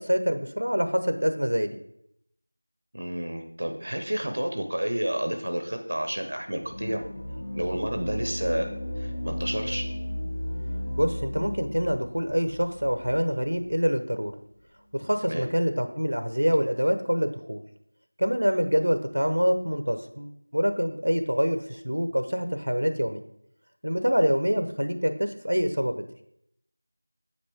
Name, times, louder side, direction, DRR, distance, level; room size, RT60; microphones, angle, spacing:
voice 1, 0.0-1.8 11.0-14.3 14.9-17.6 18.2-23.2 23.8-26.0, equal, 75° right, 8 dB, 0.8 m, -25 dB
voice 2, 2.9-7.0 7.5-8.7 9.0-9.8 15.3-15.5, right 1 dB, 40° right, 5 dB, 0.8 m, -30 dB
sound 1, 6.6-13.7, left 1 dB, 20° left, 0.8 m, -35 dB
8.2 x 5.2 x 3.5 m, 0.73 s
figure-of-eight pair, 175°, 0 cm